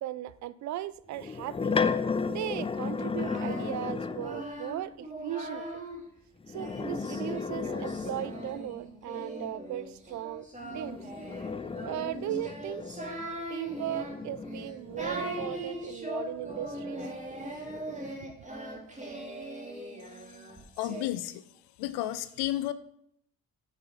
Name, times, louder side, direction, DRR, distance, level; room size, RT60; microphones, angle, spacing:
voice 1, 0.0-1.8 2.3-5.6 6.5-10.5 10.7-11.0 11.8-12.8 13.5-17.0 18.2-18.3, right 13 dB, 40° right, 0.5 m, -37 dB
sound 1, 1.1-4.5 6.4-8.8 10.7-15.9 16.4-18.2, left 5 dB, 15° left, 0.5 m, -35 dB
Singing, 3.0-6.0 6.6-21.1, right 1 dB, 15° right, 2.5 m, -40 dB
voice 2, 20.8-21.4 21.8-22.7, left 14 dB, 60° left, 0.7 m, -32 dB
8.0 x 7.6 x 6.2 m
figure-of-eight pair, 40°, 44 cm